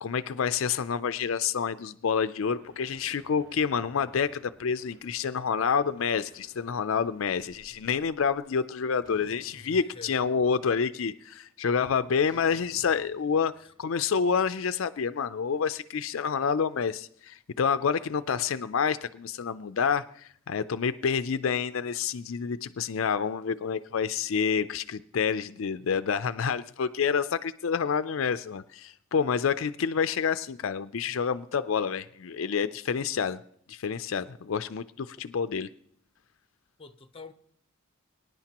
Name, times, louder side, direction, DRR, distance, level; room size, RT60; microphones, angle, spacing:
voice 1, 0.0-13.5 13.8-33.4 33.7-35.7, left 6 dB, 65° left, 0.4 m, -28 dB
sound 1, 2.4-8.5, equal, 65° right, 2.9 m, -58 dB
sound 2, 9.0-10.6 10.9-11.3 12.2-15.3, equal, 35° right, 2.9 m, -56 dB
voice 2, 9.5-10.2 35.2-35.3 36.8-37.3, left 4 dB, 25° left, 0.8 m, -46 dB
24.5 x 10.5 x 2.9 m
head